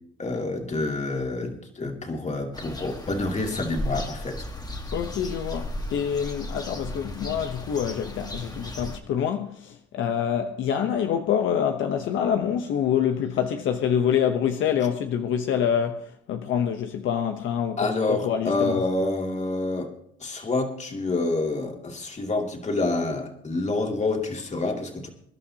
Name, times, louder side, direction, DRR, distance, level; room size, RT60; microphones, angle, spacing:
voice 1, 0.2-4.5 17.8-19.9 20.2-25.1, left 2 dB, 35° left, 2.6 m, -27 dB
sound 1, 2.5-9.0, left 1 dB, 20° left, 1.6 m, -35 dB
voice 2, 4.9-18.8, left 8 dB, 80° left, 0.9 m, -26 dB
24.0 x 11.5 x 2.9 m
cardioid pair, 90°, 20 cm